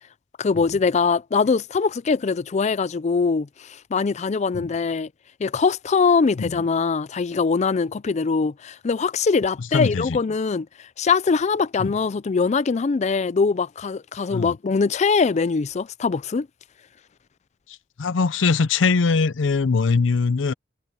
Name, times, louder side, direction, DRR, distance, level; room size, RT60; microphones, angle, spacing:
voice 1, 0.4-5.1 5.4-16.5, left 5 dB, 35° left, 0.4 m, -22 dB
voice 2, 9.7-10.2 11.8-11.9 14.3-14.5 18.0-20.5, left 4 dB, 85° left, 0.6 m, -21 dB
head